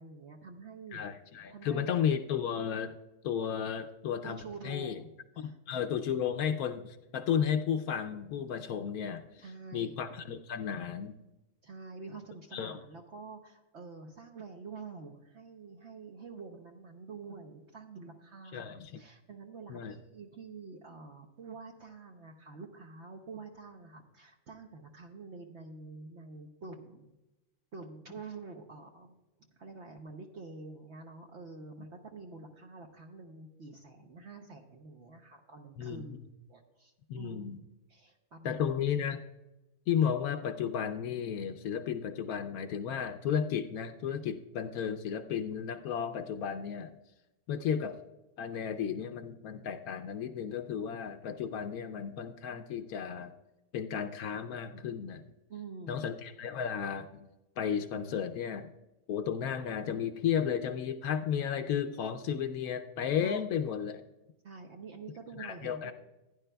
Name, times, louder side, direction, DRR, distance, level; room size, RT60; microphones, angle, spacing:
voice 1, 0.0-1.0 1.5-1.9 4.2-5.6 9.4-10.0 11.6-27.1 27.7-36.2 36.5-37.6 37.9-38.6 55.5-56.1 63.2-63.4 64.4-65.9, right 4 dB, 55° right, 2 dB, 1.0 m, -47 dB
voice 2, 0.9-2.9 3.2-5.0 5.4-9.4 9.7-11.1 12.5-12.8 18.5-19.0 19.7-19.9 35.8-36.0 37.1-37.6 38.4-39.2 39.9-46.9 47.5-48.0 48.4-53.3 53.7-55.3 55.9-57.3 57.6-58.7 59.1-64.0 65.4-65.9, left 8 dB, 80° left, 6 dB, 1.1 m, -33 dB
15.5 x 10.0 x 2.3 m, 1.0 s
omnidirectional pair, 1.5 m